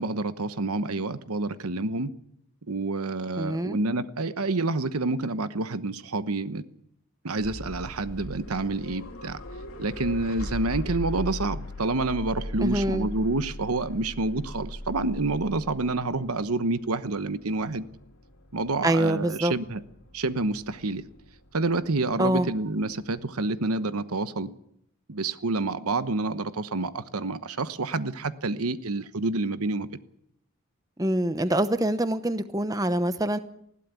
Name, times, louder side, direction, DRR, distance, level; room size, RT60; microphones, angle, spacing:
voice 1, 0.0-2.1 2.7-6.6 7.2-9.4 9.8-17.8 18.5-19.8 20.1-21.0 21.5-24.5 25.1-29.9, right 2 dB, 85° right, 12 dB, 1.1 m, -28 dB
voice 2, 3.3-3.8 12.6-13.1 18.8-19.5 22.2-22.5 31.0-33.4, right 1 dB, 15° right, 11 dB, 0.8 m, -25 dB
sound 1, 7.4-23.3, left 1 dB, 75° left, 2.6 m, -40 dB
20.5 x 15.5 x 8.4 m, 0.73 s
head